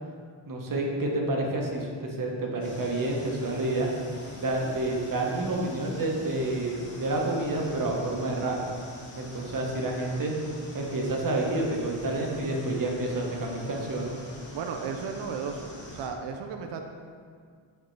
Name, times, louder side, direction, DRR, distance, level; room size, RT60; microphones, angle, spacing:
voice 1, 0.5-3.9 4.4-8.6 9.2-10.4 10.7-14.1, right 2 dB, 40° right, -1 dB, 0.9 m, -29 dB
sound 1, 2.6-16.1, left 1 dB, 35° left, 1.1 m, -46 dB
voice 2, 14.5-16.8, right 5 dB, 60° right, 4 dB, 0.5 m, -34 dB
5.2 x 4.4 x 4.5 m, 2.1 s
wide cardioid pair, 135°, 49 cm